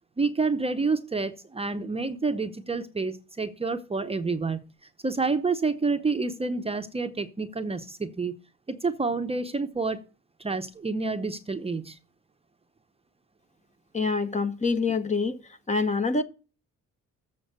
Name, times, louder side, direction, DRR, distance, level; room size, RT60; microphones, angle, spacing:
voice 1, 0.2-4.7 5.0-8.3 8.7-10.0 10.4-12.0, right 4 dB, 20° right, 0.7 m, -28 dB
voice 2, 13.9-15.4 15.7-16.2, left 4 dB, 25° left, 0.9 m, -25 dB
7.7 x 5.8 x 6.6 m
cardioid pair, 90°, 30 cm